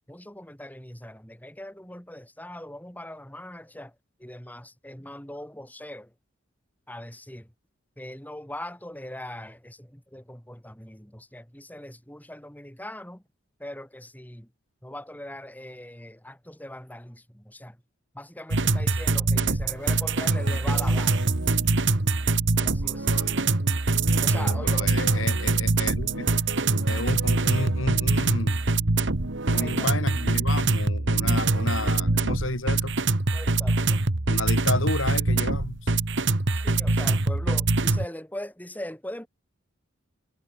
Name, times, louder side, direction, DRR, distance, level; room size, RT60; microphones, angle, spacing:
voice 1, 0.1-6.1 6.9-7.5 8.0-13.2 13.6-14.5 14.8-17.8 18.1-21.3 22.6-23.3 24.2-24.9 29.5-30.0 32.1-32.2 33.3-34.0 36.5-39.3, left 1 dB, 10° left, 6.4 m, -40 dB
sound 1, 18.5-38.1, right 3 dB, 65° right, 1.6 m, -24 dB
voice 2, 24.5-26.3 26.9-28.6 29.4-33.0 34.3-35.9, left 2 dB, 85° left, 4.8 m, -32 dB
head